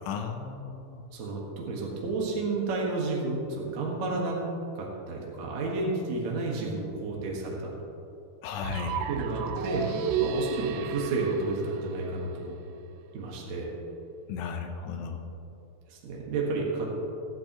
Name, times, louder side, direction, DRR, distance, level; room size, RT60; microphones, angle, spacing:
voice 1, 0.0-1.0 8.4-9.0 14.3-15.3, left 6 dB, 75° left, 4 dB, 2.7 m, -35 dB
voice 2, 1.1-4.4 4.8-7.7 9.1-9.9 10.2-12.5 13.1-13.7 15.9-16.9, right 3 dB, 60° right, -3 dB, 1.9 m, -31 dB
sound 1, 8.6-12.6, right 7 dB, 90° right, 3.2 m, -32 dB
20.0 x 8.6 x 3.0 m, 2.8 s
omnidirectional pair, 5.5 m